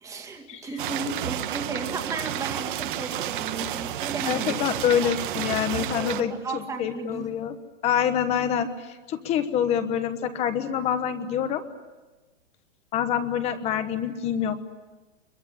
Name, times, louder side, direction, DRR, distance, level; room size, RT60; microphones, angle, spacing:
voice 1, 0.0-4.6 5.0-5.1 5.7-7.3, right 3 dB, 10° right, 3 dB, 2.2 m, -34 dB
sound 1, 0.8-6.2, right 12 dB, 40° right, 1.4 m, -31 dB
voice 2, 4.2-7.6 7.8-8.7 9.1-11.6 12.9-14.6, left 9 dB, 15° left, 10 dB, 1.2 m, -26 dB
24.5 x 22.5 x 9.9 m, 1.2 s
hypercardioid pair, 165°, 37 cm